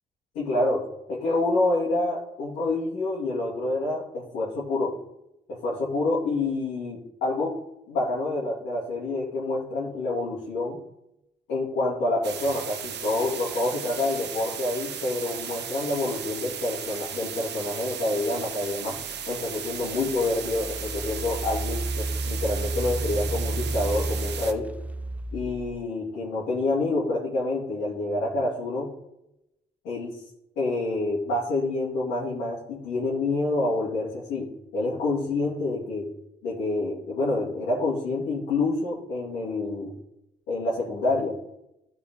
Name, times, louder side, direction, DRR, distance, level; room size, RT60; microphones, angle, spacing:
voice 1, 0.3-0.8 1.1-4.9 5.5-7.5 7.9-10.8 11.5-19.0 19.3-24.7 25.3-28.9 29.8-30.1 30.6-36.1 36.4-39.9 40.5-41.4, left 2 dB, 85° left, -8 dB, 2.8 m, -27 dB
sound 1, 12.2-24.5, right 8 dB, 65° right, 1.1 m, -36 dB
Engine, 19.2-19.3 19.9-25.8, right 2 dB, 10° right, 0.3 m, -32 dB
14.0 x 5.2 x 3.8 m, 0.88 s
supercardioid pair, 55°, 19 cm